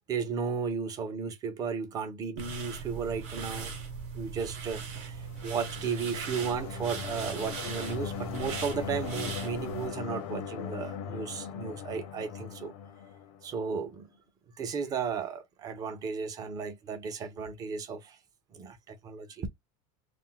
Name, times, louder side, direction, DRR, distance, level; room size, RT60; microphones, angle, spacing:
voice 1, 0.1-3.7 4.1-12.7 13.4-14.1 14.6-18.2 18.5-19.5, right 6 dB, 20° right, 0.5 m, -34 dB
sound 1, 2.4-9.9, right 5 dB, 45° right, 0.9 m, -39 dB
sound 2, 5.1-13.8, left 8 dB, 70° left, 0.6 m, -40 dB
2.5 x 2.0 x 3.7 m
cardioid pair, 165°, 17 cm